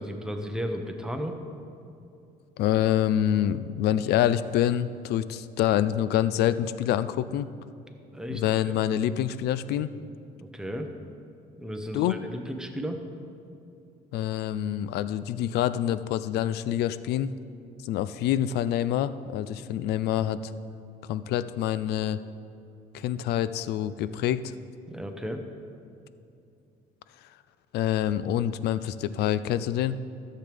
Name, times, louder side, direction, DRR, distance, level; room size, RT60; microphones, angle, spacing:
voice 1, 0.0-1.4 8.1-8.8 10.4-10.9 11.6-13.0 24.9-25.4, equal, 5° right, 4 dB, 0.9 m, -34 dB
voice 2, 2.6-7.5 8.3-9.9 11.9-12.2 14.1-17.4 17.8-20.4 21.1-22.2 22.9-24.4 27.7-30.0, left 11 dB, 75° left, 14 dB, 0.4 m, -26 dB
13.5 x 7.5 x 3.4 m, 2.7 s
cardioid pair, 110°, 17 cm